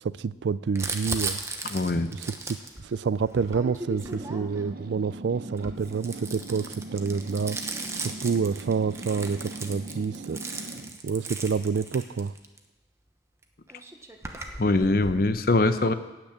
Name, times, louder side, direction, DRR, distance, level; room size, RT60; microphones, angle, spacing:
voice 1, 0.0-1.4 2.1-10.7 11.0-12.3, right 5 dB, 85° right, 18 dB, 0.4 m, -28 dB
Crumpling crinkling, 0.8-4.8 5.5-12.6 13.4-13.5 13.7-15.3, right 3 dB, 15° right, 1.0 m, -37 dB
voice 2, 1.7-2.1 14.6-15.9, left 2 dB, 55° left, 10 dB, 0.8 m, -22 dB
sound 1, 3.9-11.0, right 2 dB, 55° right, 0.8 m, -41 dB
17.0 x 6.0 x 8.7 m, 1.2 s
head